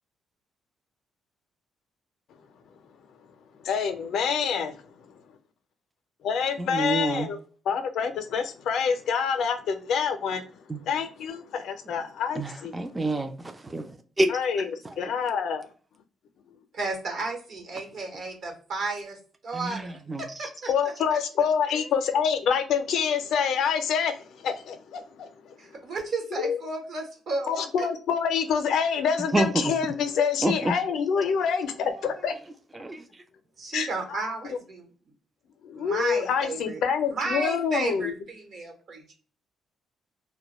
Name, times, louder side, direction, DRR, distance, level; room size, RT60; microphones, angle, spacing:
voice 1, 3.6-4.8 6.2-7.4 7.7-10.4 10.8-12.8 14.3-14.7 15.0-15.7 20.7-25.6 26.4-26.6 27.5-32.3 33.7-34.2 35.6-38.1, left 6 dB, 75° left, 0.4 m, -27 dB
voice 2, 6.6-7.3 10.7-10.8 12.4-13.9 14.2-14.4 14.8-14.9 19.5-20.2 29.3-29.7 30.4-30.7 32.7-33.0, right 2 dB, 20° right, 0.3 m, -27 dB
voice 3, 16.7-21.2 21.6-22.2 25.6-27.9 31.4-32.4 33.6-34.9 35.7-36.8 37.1-39.1, right 3 dB, 65° right, 1.0 m, -34 dB
2.2 x 2.1 x 2.9 m
cardioid pair, 90°, 0 cm